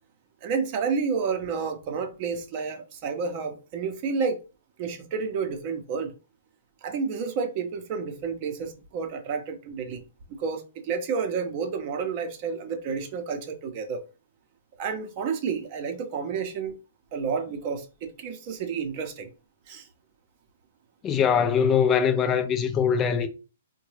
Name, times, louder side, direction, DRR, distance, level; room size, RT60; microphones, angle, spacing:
voice 1, 0.4-4.4 4.8-6.1 6.8-10.0 10.4-14.0 14.8-16.7 17.1-19.3 19.7-19.9, right 5 dB, 40° right, 0.6 m, -30 dB
voice 2, 21.0-23.3, left 7 dB, 20° left, 0.4 m, -22 dB
3.8 x 2.2 x 3.1 m
hypercardioid pair, 150°, 0 cm